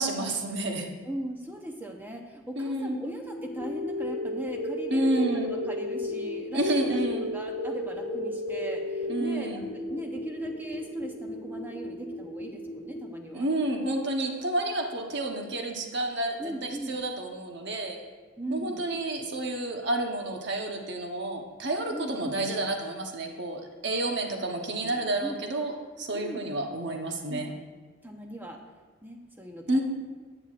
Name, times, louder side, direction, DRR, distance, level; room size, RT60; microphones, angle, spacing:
voice 1, 0.0-0.9 2.6-3.0 4.9-5.5 6.5-7.3 9.1-9.6 13.3-18.0 18.5-27.5 29.7-29.8, right 1 dB, 55° right, 2 dB, 1.0 m, -30 dB
voice 2, 1.0-13.5 16.4-17.0 18.4-18.9 21.9-22.4 24.5-25.4 26.1-26.4 27.3-27.5 28.0-28.6 29.0-29.8, right 1 dB, 10° right, 2 dB, 0.8 m, -39 dB
sound 1, 3.1-13.1, left 1 dB, 20° left, 2.0 m, -34 dB
13.5 x 9.0 x 2.5 m, 1.4 s
head